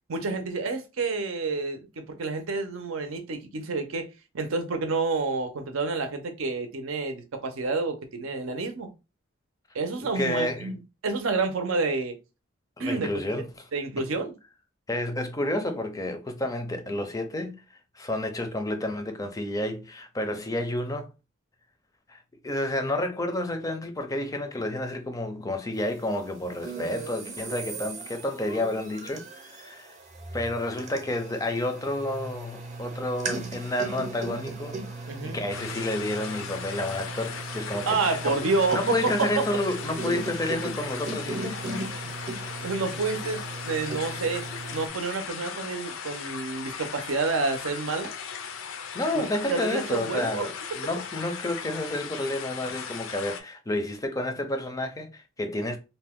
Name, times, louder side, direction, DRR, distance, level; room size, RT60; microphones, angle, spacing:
voice 1, 0.1-4.1 4.3-8.9 9.7-12.2 12.8-13.1 13.7-14.3 35.1-35.4 37.8-39.5 42.6-48.2 49.1-50.5, right 3 dB, 90° right, 0.6 m, -29 dB
voice 2, 10.0-10.7 12.8-13.6 14.9-17.6 17.9-21.1 22.1-30.0 30.3-38.2 38.7-41.6 48.9-55.8, left 1 dB, 15° left, 0.4 m, -30 dB
sound 1, 26.6-44.9, right 3 dB, 35° right, 0.7 m, -37 dB
sound 2, 35.5-53.4, left 7 dB, 80° left, 0.4 m, -38 dB
2.6 x 2.2 x 3.5 m
head